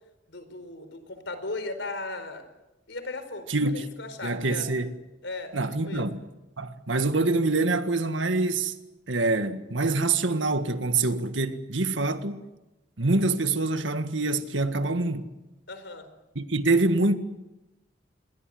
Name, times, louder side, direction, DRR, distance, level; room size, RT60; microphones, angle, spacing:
voice 1, 0.3-2.4 2.9-4.7 5.2-5.6 5.9-6.1 15.7-16.1, left 2 dB, 75° left, 4.6 m, -37 dB
voice 2, 3.5-3.9 4.2-4.9 5.5-6.2 6.6-8.7 9.1-12.4 13.0-15.3 16.3-17.2, right 3 dB, 85° right, 1.8 m, -25 dB
27.5 x 22.5 x 7.9 m
head